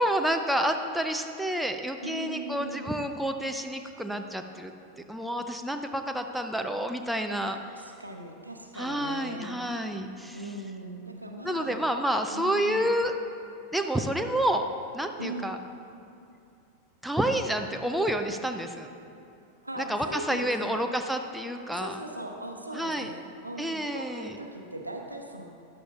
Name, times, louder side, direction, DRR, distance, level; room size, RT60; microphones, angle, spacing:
voice 1, 0.0-4.7 5.1-7.6 8.7-10.4 11.4-13.1 13.7-14.6 14.9-15.6 17.0-18.9 19.9-22.0 22.7-23.1 23.6-24.3, right 1 dB, ahead, 5 dB, 0.6 m, -29 dB
voice 2, 2.0-3.0 7.7-9.6 10.3-11.8 12.3-12.9 15.2-15.5 19.6-20.7 21.6-25.5, right 1 dB, 85° right, 3 dB, 0.9 m, -39 dB
14.0 x 10.5 x 2.4 m, 2.6 s
figure-of-eight pair, 90°, 0 cm